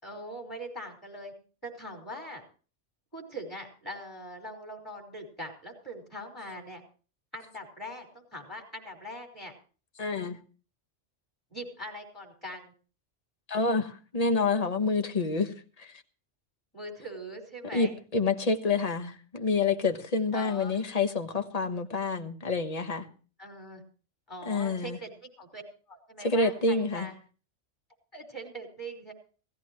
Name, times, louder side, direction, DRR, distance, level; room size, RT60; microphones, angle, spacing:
voice 1, 0.0-1.3 1.6-2.4 3.1-6.8 7.3-9.5 11.5-12.7 16.7-17.9 20.3-20.8 23.4-23.8 24.3-25.6 25.9-27.1 28.1-29.1, equal, 20° left, 5.1 m, -42 dB
voice 2, 10.0-10.4 13.5-15.9 17.7-23.1 24.5-25.0 26.2-27.1, left 3 dB, 35° left, 1.2 m, -28 dB
17.0 x 16.0 x 3.1 m
omnidirectional pair, 1.3 m